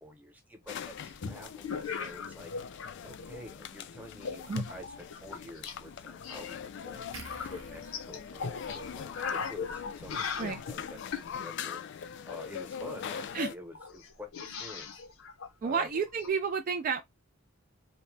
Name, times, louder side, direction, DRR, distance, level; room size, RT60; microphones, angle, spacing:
voice 1, 0.0-7.0 7.4-11.0 11.4-11.8 12.2-14.9 15.6-15.9, equal, 10° right, 0.8 m, -48 dB
sound 1, 0.7-2.9 3.2-3.7 4.2-5.8 6.1-11.3 13.0-13.1 13.3-13.4 13.8-16.3, left 5 dB, 85° left, 0.7 m, -39 dB
sound 2, 0.7-13.6, left 7 dB, 60° left, 0.3 m, -42 dB
sound 3, 7.1-10.5 10.8-11.0, right 4 dB, 80° right, 0.7 m, -53 dB
voice 2, 15.6-17.0, right 5 dB, 45° right, 0.3 m, -30 dB
2.8 x 2.1 x 3.2 m
head